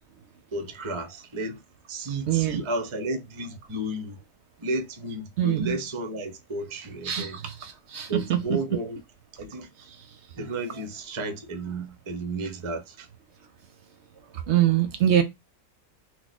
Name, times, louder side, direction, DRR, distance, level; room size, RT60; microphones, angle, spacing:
voice 1, 0.5-1.6 1.9-4.2 4.6-7.4 8.1-9.0 9.4-9.7 10.3-13.1, right 2 dB, 50° right, 0.3 m, -32 dB
voice 2, 2.3-2.6 5.4-5.8 7.1-8.5 14.5-15.2, right 11 dB, 65° right, 0.7 m, -24 dB
3.0 x 2.0 x 3.9 m
omnidirectional pair, 1.4 m